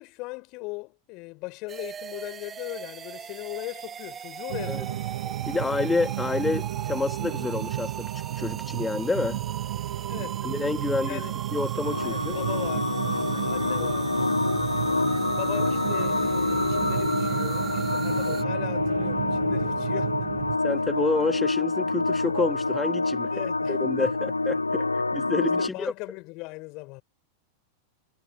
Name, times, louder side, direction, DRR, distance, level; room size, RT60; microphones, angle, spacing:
voice 1, 0.0-5.0 10.1-10.4 11.0-11.3 12.0-14.2 15.0-20.3 23.3-24.1 25.6-27.0, left 26 dB, 40° left, 4.5 m, -39 dB
sound 1, 1.7-18.4, right 7 dB, 20° right, 1.4 m, -39 dB
sound 2, 4.5-20.6, right 14 dB, 55° right, 0.9 m, -33 dB
voice 2, 5.5-9.4 10.4-11.2 11.5-12.4 13.8-13.9 18.3-18.4 20.6-23.3 23.7-25.9, left 3 dB, 10° left, 1.6 m, -29 dB
sound 3, 11.8-25.7, left 3 dB, 80° left, 0.4 m, -27 dB
figure-of-eight pair, 90°, 0 cm